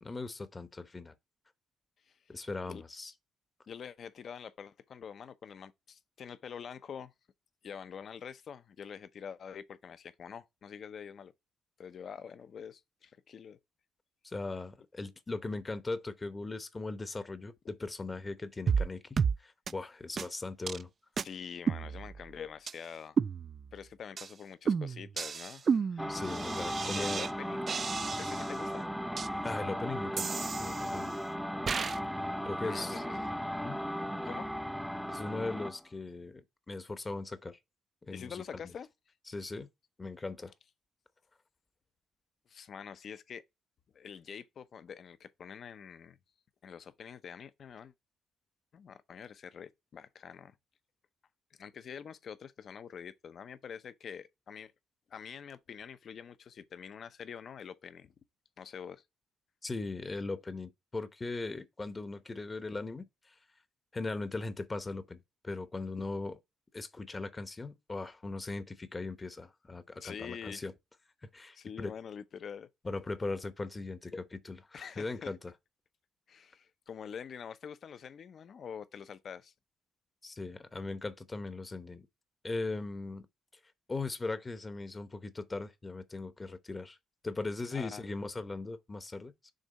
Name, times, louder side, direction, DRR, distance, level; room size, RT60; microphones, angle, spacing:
voice 1, 0.0-1.1 2.3-3.1 14.2-20.9 26.1-27.3 29.4-31.2 32.5-33.0 33.6-33.8 35.1-37.6 38.0-38.6 39.3-39.7 40.0-40.5 59.6-63.4 63.9-66.4 66.7-70.7 71.3-71.9 72.8-75.5 80.2-82.1 82.4-83.3 83.9-87.0 87.2-89.5, left 3 dB, 30° left, 0.8 m, -39 dB
voice 2, 3.7-7.1 7.6-11.3 11.8-13.6 21.2-23.2 23.7-26.2 26.8-27.7 28.2-28.9 32.6-33.2 34.2-34.5 38.1-38.9 42.5-43.4 43.9-46.2 46.6-47.9 48.7-50.5 51.6-54.7 55.1-58.1 58.6-59.0 70.0-70.6 71.5-72.7 74.7-75.3 76.3-79.5 87.7-88.1, left 7 dB, 55° left, 0.6 m, -46 dB
sound 1, 18.7-18.9 19.2-19.4 19.7-19.8 20.2-20.3 20.7-20.8 21.2-21.3 21.7-22.3 22.7-22.8 23.2-23.8 24.2-24.3 24.7-27.3 27.7-28.6 29.2-29.3 30.2-31.1 31.7-32.0, right 6 dB, 50° right, 0.3 m, -32 dB
sound 2, 26.0-35.8, equal, ahead, 0.6 m, -36 dB
6.5 x 3.5 x 4.1 m
hypercardioid pair, 50°, 0 cm